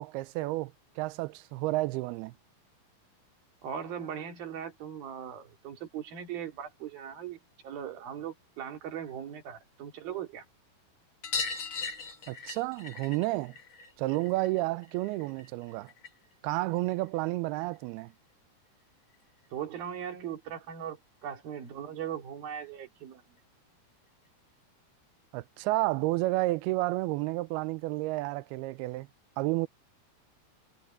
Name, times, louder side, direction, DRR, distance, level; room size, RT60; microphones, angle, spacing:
voice 1, 0.0-2.3 12.3-13.5 14.0-15.9 16.4-18.1 25.3-29.1 29.4-29.7, right 20 dB, 90° right, 2.6 m, -31 dB
voice 2, 3.6-7.4 7.6-10.5 19.5-21.0 21.2-23.2, right 9 dB, 70° right, 4.4 m, -39 dB
sound 1, 11.2-16.3 16.6-17.8 19.1-19.2 19.4-19.5 19.9-20.0 21.2-21.3 21.6-21.7 22.0-22.1 23.4-23.5 24.3-24.4, left 4 dB, 45° left, 1.8 m, -40 dB
omnidirectional pair, 4.4 m